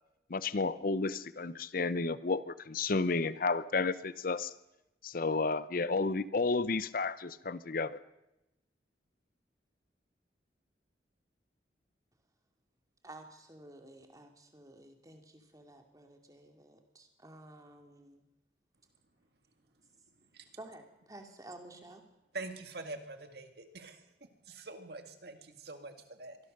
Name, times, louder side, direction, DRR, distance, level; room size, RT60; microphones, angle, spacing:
voice 1, 0.3-4.5 5.0-8.0, left 3 dB, 50° left, 15 dB, 0.7 m, -32 dB
voice 2, 13.0-18.2 20.6-22.0, right 1 dB, 20° right, 4 dB, 2.4 m, -52 dB
voice 3, 22.3-24.1 24.4-26.4, right 2 dB, 60° right, 7 dB, 2.0 m, -45 dB
23.5 x 17.0 x 6.6 m, 0.95 s
head